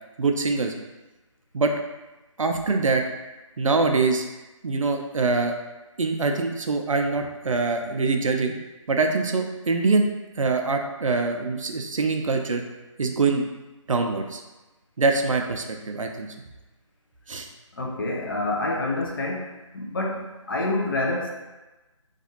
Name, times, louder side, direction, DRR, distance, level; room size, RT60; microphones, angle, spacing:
voice 1, 0.2-0.7 1.5-1.7 2.4-3.0 3.6-4.2 4.6-5.5 6.0-8.5 8.9-10.1 10.4-12.6 13.0-13.4 13.9-14.4 15.0-16.3 17.3-17.5, right 3 dB, 75° right, 4 dB, 0.4 m, -24 dB
voice 2, 17.8-19.5 19.7-21.3, left 2 dB, 40° left, -2 dB, 0.5 m, -27 dB
2.5 x 2.3 x 2.8 m, 1.1 s
figure-of-eight pair, 155°, 17 cm